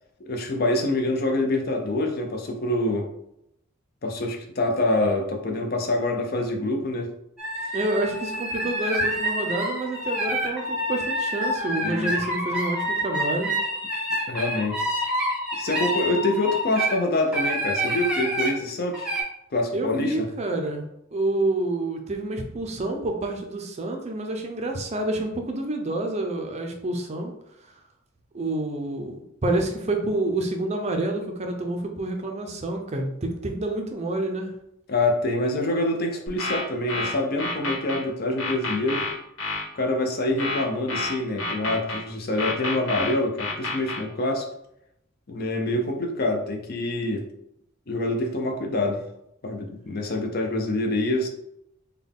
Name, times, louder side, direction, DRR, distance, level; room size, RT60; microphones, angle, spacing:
voice 1, 0.2-3.1 4.0-7.1 7.6-7.7 11.8-12.1 14.3-14.8 15.5-19.1 19.5-20.3 34.9-39.0 39.7-44.5 45.3-47.3 47.9-49.0 49.4-51.3, left 2 dB, 45° left, 3 dB, 0.5 m, -26 dB
sound 1, 7.4-17.0 17.3-18.5 18.9-19.2, equal, 5° right, 0.8 m, -27 dB
voice 2, 7.7-13.5 16.1-16.2 19.7-20.8 21.1-27.3 28.3-34.5, right 2 dB, 30° right, 3 dB, 0.5 m, -28 dB
sound 2, 36.3-38.0 38.4-39.6 40.4-42.0 42.4-44.0, left 2 dB, 70° left, 1.5 m, -29 dB
3.7 x 2.2 x 3.6 m, 0.79 s
head